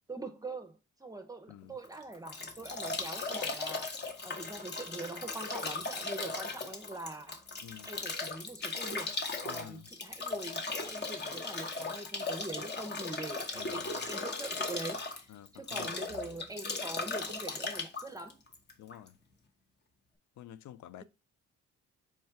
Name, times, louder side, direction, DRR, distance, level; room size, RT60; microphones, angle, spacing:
voice 1, 0.1-3.9 4.2-7.4 7.8-9.2 9.4-15.0 15.5-18.4, right 2 dB, 10° right, 0.6 m, -43 dB
Bathtub (filling or washing) / Drip / Trickle dribble, 1.8-19.1, left 3 dB, 35° left, 0.9 m, -37 dB
voice 2, 9.5-9.9 13.5-13.9 15.3-15.9 18.8-19.1 20.4-21.0, left 11 dB, 70° left, 0.4 m, -49 dB
4.4 x 2.2 x 4.5 m
cardioid pair, 90°, 30 cm